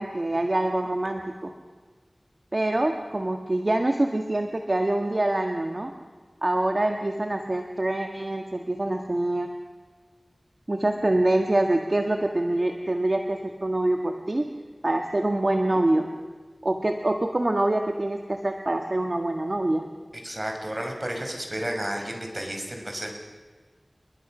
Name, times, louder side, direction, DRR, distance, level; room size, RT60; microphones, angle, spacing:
voice 1, 0.0-1.5 2.5-5.9 6.4-9.5 10.7-14.4 14.8-16.1 16.6-19.9, right 1 dB, 55° right, 4 dB, 1.7 m, -25 dB
voice 2, 20.2-23.1, right 1 dB, 35° right, 3 dB, 5.2 m, -32 dB
29.0 x 22.0 x 6.2 m, 1.4 s
wide cardioid pair, 45°, 0 cm